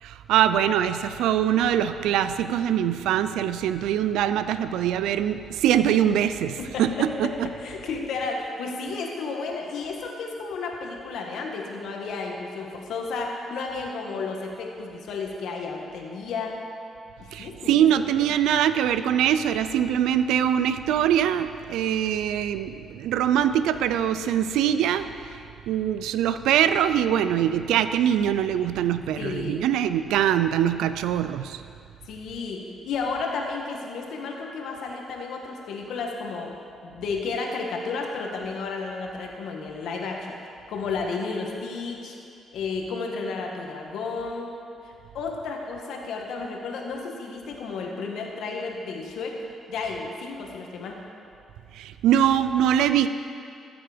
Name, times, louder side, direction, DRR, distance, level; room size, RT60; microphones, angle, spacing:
voice 1, 0.0-7.5 17.3-25.4 25.7-31.6 51.7-53.1, right 10 dB, 90° right, 12 dB, 0.4 m, -23 dB
voice 2, 6.5-7.3 7.6-16.5 17.2-18.0 29.2-29.6 32.1-36.5 36.8-40.4 40.7-42.2 42.5-44.5 44.8-49.4 49.7-51.0, left 4 dB, 75° left, 1 dB, 1.6 m, -32 dB
13.5 x 7.9 x 5.1 m, 2.5 s
cardioid pair, 90°, 0 cm